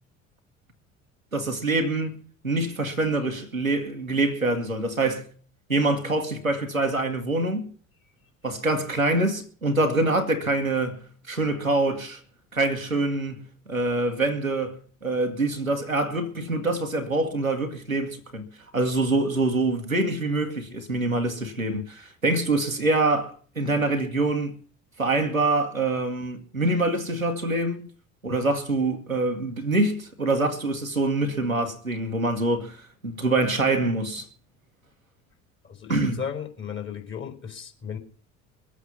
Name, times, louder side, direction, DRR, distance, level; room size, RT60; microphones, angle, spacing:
voice 1, 1.3-2.2 2.4-5.3 5.7-7.7 8.4-12.2 12.5-18.4 18.7-24.6 25.0-27.9 28.2-34.3 35.9-36.2, right 2 dB, 90° right, 1.6 m, -25 dB
voice 2, 35.6-38.0, left 7 dB, 30° left, 4.3 m, -35 dB
22.5 x 8.3 x 5.4 m
figure-of-eight pair, 60°, 40 cm